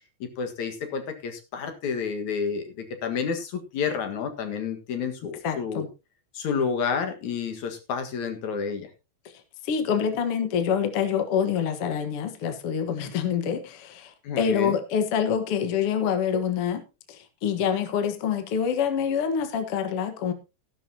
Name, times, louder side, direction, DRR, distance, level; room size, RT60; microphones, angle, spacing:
voice 1, 0.4-5.8 6.3-8.9 14.2-14.8, left 6 dB, 75° left, 7 dB, 3.0 m, -30 dB
voice 2, 5.4-5.9 9.6-16.8 17.1-20.3, left 7 dB, 55° left, 8 dB, 2.1 m, -26 dB
14.0 x 11.5 x 2.8 m, 0.28 s
omnidirectional pair, 3.4 m